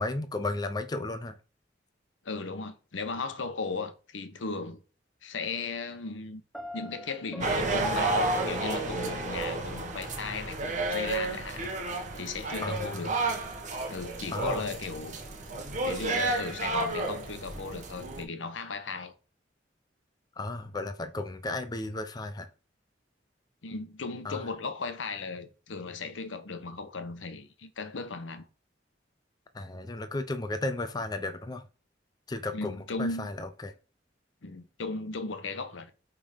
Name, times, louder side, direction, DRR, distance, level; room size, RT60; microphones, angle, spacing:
voice 1, 0.0-1.4 12.6-13.1 14.3-14.7 20.4-22.5 24.2-24.5 29.5-31.6 32.3-33.7, left 2 dB, 20° left, 0.4 m, -34 dB
voice 2, 2.2-4.8 5.2-6.4 6.7-8.2 8.5-11.7 12.1-13.2 13.9-15.2 15.8-19.1 23.6-28.5 32.5-33.3 34.4-35.9, left 4 dB, 85° left, 0.9 m, -36 dB
Piano, 6.5-10.4, left 3 dB, ahead, 1.3 m, -40 dB
sound 1, 7.4-18.2, right 2 dB, 40° right, 1.1 m, -31 dB
5.2 x 3.5 x 5.1 m
head